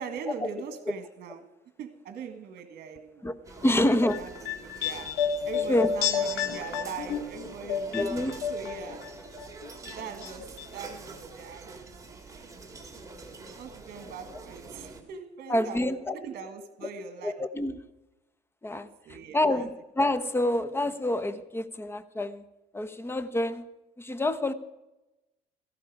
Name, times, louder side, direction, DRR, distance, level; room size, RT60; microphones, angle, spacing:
voice 1, 0.0-1.5 1.8-3.3 3.7-9.1 9.9-12.7 13.5-17.3 19.1-19.7, right 6 dB, 60° right, 8 dB, 1.7 m, -41 dB
sound 1, 3.4-15.0, right 3 dB, 20° right, 2.4 m, -46 dB
voice 2, 3.6-4.2 5.7-5.9 7.9-8.4 15.5-16.2 16.8-16.9 17.2-17.8 18.6-22.4 22.7-23.7 24.0-24.5, left 1 dB, 15° left, 12 dB, 1.0 m, -27 dB
sound 2, 3.9-9.1 9.4-10.3 10.6-10.7, left 7 dB, 80° left, 2.1 m, -31 dB
17.0 x 14.5 x 4.8 m, 1.0 s
cardioid pair, 110°, 17 cm